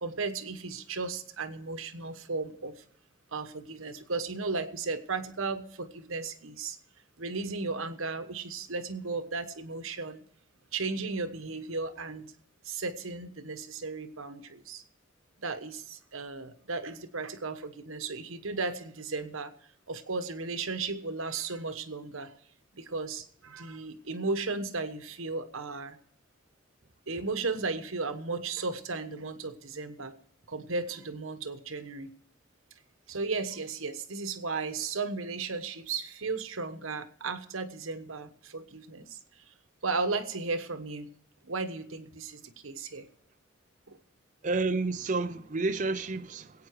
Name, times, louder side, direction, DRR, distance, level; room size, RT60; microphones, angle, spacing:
voice 1, 0.0-2.8 3.3-6.8 7.2-10.2 10.7-12.3 12.6-14.8 15.4-19.5 19.9-22.3 22.7-26.0 27.1-30.2 30.5-32.1 33.1-39.2 39.8-41.1 41.4-43.1 43.9-44.0, right 4 dB, 85° right, 1.2 m, -35 dB
voice 2, 44.4-46.7, right 3 dB, 35° right, 0.6 m, -30 dB
19.0 x 8.9 x 4.7 m
head